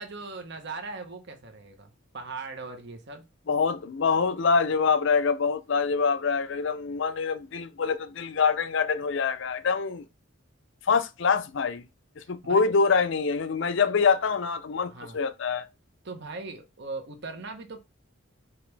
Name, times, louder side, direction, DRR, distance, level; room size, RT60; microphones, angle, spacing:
voice 1, 0.0-3.2 12.2-12.6 14.9-15.2 16.0-17.8, right 3 dB, 55° right, 0.9 m, -39 dB
voice 2, 3.5-10.0 10.9-11.8 12.3-15.7, left 5 dB, 60° left, 0.5 m, -25 dB
5.0 x 3.0 x 3.3 m
head